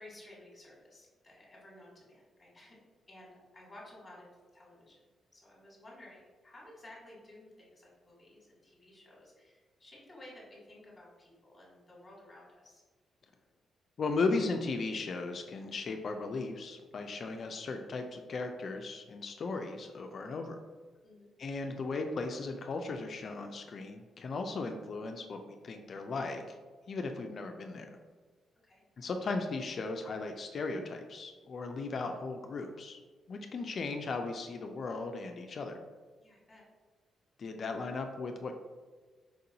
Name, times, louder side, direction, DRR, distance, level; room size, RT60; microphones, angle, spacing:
voice 1, 0.0-2.8 3.1-5.0 5.3-12.8 21.0-21.3 28.6-28.8 36.2-36.6, left 1 dB, 20° left, -5 dB, 1.3 m, -54 dB
voice 2, 14.0-20.6 21.4-26.6 26.9-27.9 29.0-33.0 33.3-35.8 37.4-38.5, left 3 dB, 55° left, 5 dB, 0.3 m, -36 dB
4.5 x 2.5 x 2.8 m, 1.4 s
cardioid pair, 75°, 0 cm